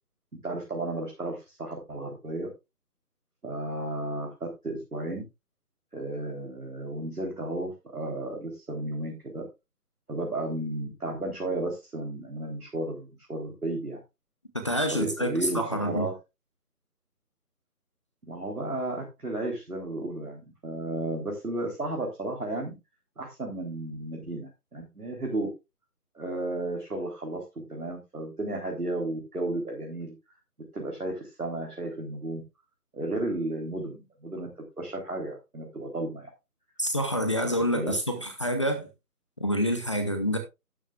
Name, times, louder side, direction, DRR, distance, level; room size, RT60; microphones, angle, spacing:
voice 1, 0.4-2.5 3.4-4.3 4.6-5.2 5.9-9.4 10.1-14.0 14.9-16.1 18.3-22.7 23.2-25.5 26.2-27.4 27.7-30.1 30.7-32.4 32.9-34.5 34.8-36.3 37.4-37.9, right 2 dB, 70° right, 4.2 m, -33 dB
voice 2, 14.6-16.1 36.8-38.9 39.4-40.4, equal, 20° left, 1.1 m, -27 dB
12.5 x 10.5 x 2.5 m
figure-of-eight pair, 155°, 47 cm